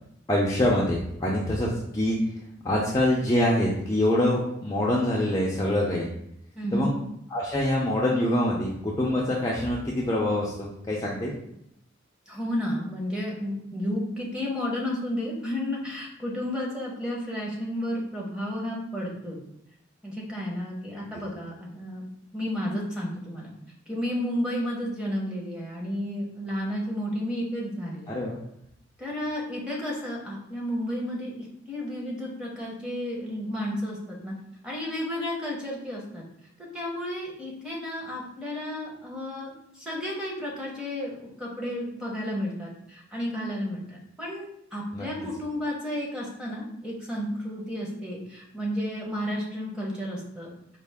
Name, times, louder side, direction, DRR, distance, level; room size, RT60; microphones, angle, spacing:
voice 1, 0.3-2.4 2.6-6.1 6.7-6.9 7.3-11.4 28.1-28.4 44.9-45.1, left 1 dB, 15° left, -4 dB, 0.5 m, -25 dB
voice 2, 6.6-6.9 12.3-19.4 20.0-22.0 22.3-23.5 23.9-28.1 29.0-31.3 31.7-34.3 34.6-36.2 36.6-50.5, left 1 dB, 5° right, -3 dB, 0.9 m, -32 dB
4.5 x 2.4 x 3.5 m, 0.75 s
head